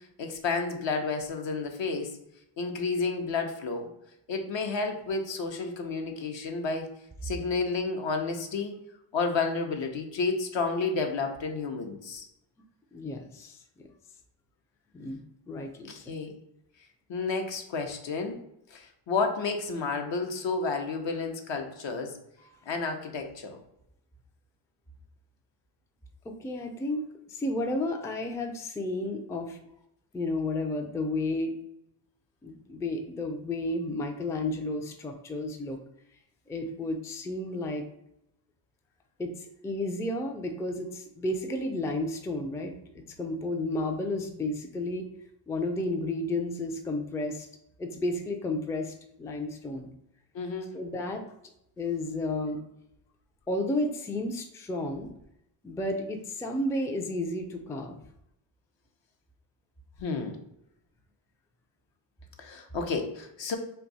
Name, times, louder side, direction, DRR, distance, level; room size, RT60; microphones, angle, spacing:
voice 1, 0.2-2.2 2.6-3.9 4.3-6.9 7.2-8.8 9.1-12.3 15.9-16.3 17.1-18.4 18.7-22.1 22.7-23.6 50.3-50.7 60.0-60.4 62.4-63.6, left 4 dB, 60° left, 4 dB, 0.7 m, -31 dB
voice 2, 12.9-13.6 14.9-15.9 22.4-22.6 26.2-29.6 30.1-31.6 32.4-35.8 36.5-37.8 39.2-42.7 43.2-45.1 45.5-47.5 47.8-49.9 50.7-51.2 51.8-52.6 53.5-55.1 55.6-58.0, left 2 dB, 5° left, 3 dB, 0.3 m, -32 dB
2.7 x 2.3 x 3.9 m, 0.80 s
cardioid pair, 60°, 50 cm